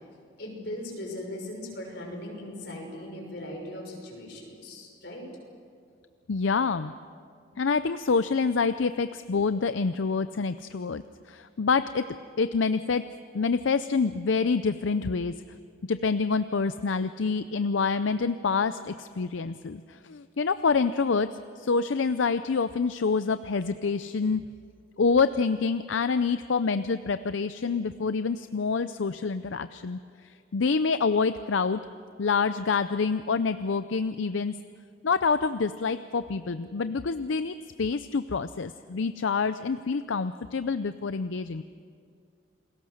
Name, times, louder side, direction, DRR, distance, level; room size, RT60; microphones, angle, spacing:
voice 1, 0.4-5.3, left 1 dB, 60° left, 0 dB, 6.0 m, -39 dB
voice 2, 6.3-6.9 7.6-13.1 13.3-15.4 15.9-24.5 25.0-31.8 32.2-34.5 35.0-41.6, left 4 dB, 80° left, 12 dB, 0.5 m, -27 dB
29.0 x 21.0 x 6.5 m, 2.3 s
head